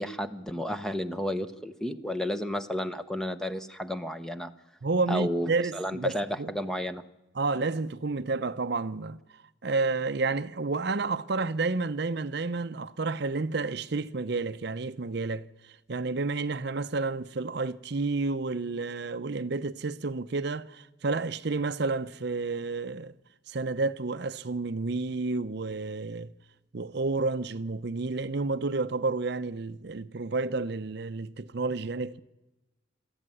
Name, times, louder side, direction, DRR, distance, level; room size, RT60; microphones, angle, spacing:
voice 1, 0.0-4.5 5.1-7.0, equal, 5° left, 0.7 m, -32 dB
voice 2, 4.8-6.5 7.3-23.1 23.5-26.3 26.7-32.2, right 3 dB, 55° right, 0.6 m, -30 dB
20.0 x 14.0 x 9.7 m
head